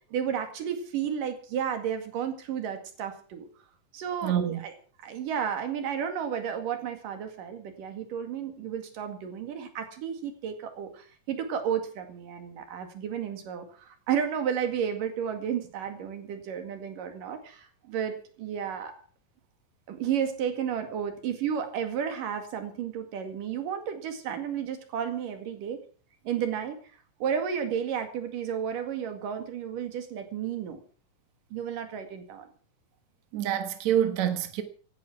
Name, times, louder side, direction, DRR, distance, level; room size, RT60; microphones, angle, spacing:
voice 1, 0.1-3.5 3.9-4.8 5.0-18.9 19.9-25.8 26.3-26.8 27.2-30.8 31.5-32.5, right 8 dB, 85° right, 3.7 m, -32 dB
voice 2, 4.2-4.6 33.3-34.6, right 10 dB, 65° right, 2.7 m, -26 dB
17.5 x 10.5 x 6.1 m
omnidirectional pair, 3.7 m